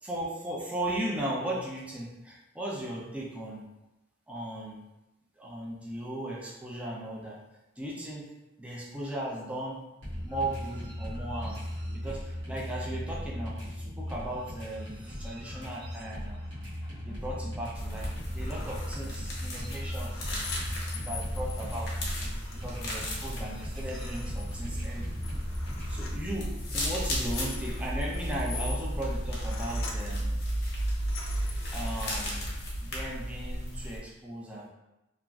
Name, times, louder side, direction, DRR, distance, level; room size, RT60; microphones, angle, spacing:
voice 1, 0.0-3.7 4.3-4.8 5.4-7.4 7.8-8.3 8.6-9.8 10.2-11.6 11.9-16.4 17.1-18.1 18.3-20.2 20.9-21.9 22.5-25.1 25.9-30.4 31.7-32.5 32.8-34.7, right 1 dB, 5° right, -4 dB, 0.4 m, -37 dB
sound 1, 10.0-26.3, equal, 65° right, 1.1 m, -38 dB
peeling Orange, 17.7-34.0, equal, 55° left, 0.8 m, -34 dB
sound 2, 17.8-18.1 18.4-19.1 19.7-23.1 23.4-23.5 23.8-24.9 25.2-26.2 26.9-30.2 30.8-32.1, left 4 dB, 80° left, 0.5 m, -45 dB
2.9 x 2.4 x 2.3 m, 0.96 s
head